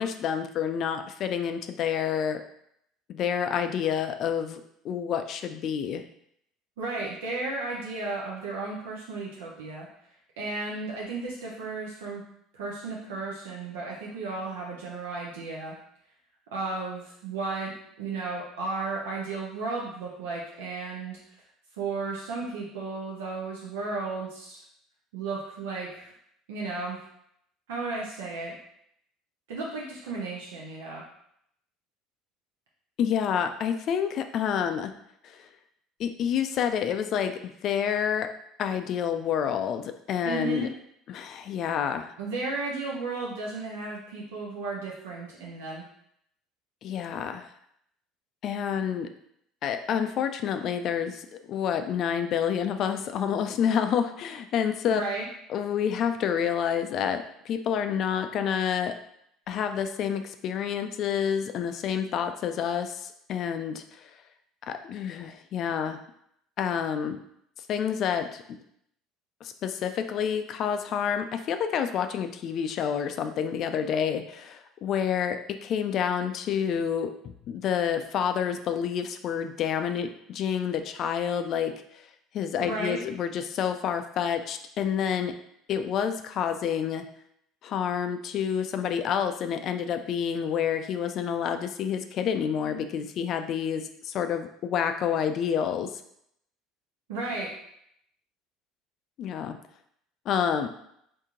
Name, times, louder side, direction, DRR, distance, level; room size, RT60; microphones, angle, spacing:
voice 1, 0.0-2.4 3.1-6.0 33.0-34.9 35.2-35.4 36.0-38.3 38.6-40.7 41.1-42.1 46.8-47.5 48.4-49.1 49.6-55.0 55.5-59.0 59.5-64.1 64.7-66.0 66.6-67.2 67.7-68.4 69.4-81.7 82.3-85.3 85.7-87.0 87.6-95.9 99.2-99.6 100.3-100.7, left 8 dB, 55° left, 8 dB, 0.3 m, -28 dB
voice 2, 6.8-9.9 10.4-12.2 12.5-15.7 16.5-17.7 18.0-21.2 21.8-24.6 25.1-26.1 26.5-27.0 27.7-28.5 29.5-31.0 40.2-40.7 42.2-45.8 54.9-55.2 82.6-83.0 97.1-97.5, right 3 dB, 85° right, -4 dB, 0.6 m, -34 dB
2.9 x 2.6 x 3.6 m, 0.72 s
hypercardioid pair, 80°, 0 cm